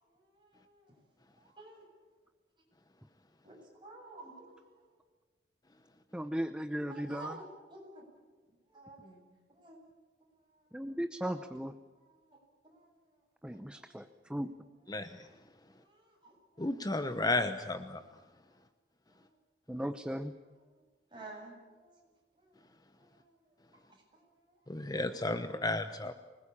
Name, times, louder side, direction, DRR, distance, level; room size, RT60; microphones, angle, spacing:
voice 1, 0.4-0.8 1.4-1.8 3.4-3.6 3.8-4.6 6.9-8.0 8.7-9.2 9.6-9.8 12.3-12.4 12.7-12.9 13.7-13.9 15.0-15.1 15.8-16.6 21.1-22.0 22.4-22.5 23.1-23.2 25.2-25.5, right 2 dB, 30° right, 0 dB, 7.7 m, -51 dB
voice 2, 6.1-7.4 10.7-11.7 13.4-14.5 19.7-20.3, equal, 5° right, 10 dB, 0.7 m, -37 dB
voice 3, 14.9-15.2 16.6-18.0 24.7-26.1, left 2 dB, 25° left, 9 dB, 1.0 m, -33 dB
25.0 x 20.0 x 8.7 m, 1.3 s
head